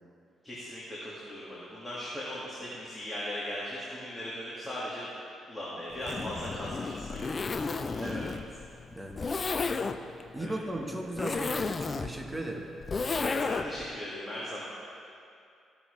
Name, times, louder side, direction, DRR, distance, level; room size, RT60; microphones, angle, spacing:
voice 1, 0.4-5.1 5.5-8.4 10.4-10.5 13.2-14.6, left 1 dB, 10° left, -8 dB, 2.0 m, -39 dB
Zipper (clothing), 5.9-13.9, left 4 dB, 35° left, 0.4 m, -33 dB
voice 2, 8.9-9.2 10.3-12.7, right 1 dB, 10° right, 1 dB, 1.3 m, -36 dB
15.0 x 7.0 x 3.2 m, 2.5 s
cardioid pair, 90°, 0 cm